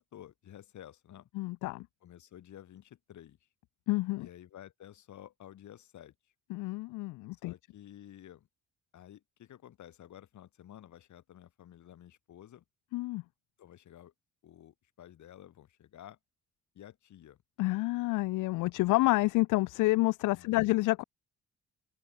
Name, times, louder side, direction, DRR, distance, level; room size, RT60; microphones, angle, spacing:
voice 1, 0.0-1.3 2.0-3.4 4.2-6.1 7.4-8.5 8.9-12.6 13.6-14.1 14.4-16.2 16.7-17.4 20.4-20.6, left 11 dB, 70° left, 6.4 m, -52 dB
voice 2, 1.3-1.9 3.9-4.3 6.5-7.5 12.9-13.2 17.6-21.0, left 20 dB, 90° left, 0.5 m, -28 dB
cardioid pair, 90°, 30 cm